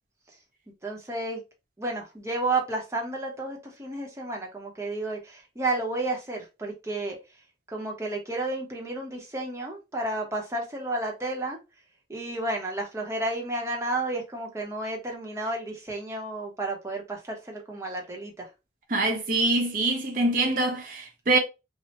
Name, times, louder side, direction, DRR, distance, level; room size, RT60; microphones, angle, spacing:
voice 1, 0.8-1.4 1.8-7.2 7.7-11.6 12.1-18.5, right 2 dB, 15° right, 0.7 m, -31 dB
voice 2, 18.9-21.4, right 2 dB, 50° right, 0.7 m, -24 dB
2.8 x 2.0 x 3.0 m
head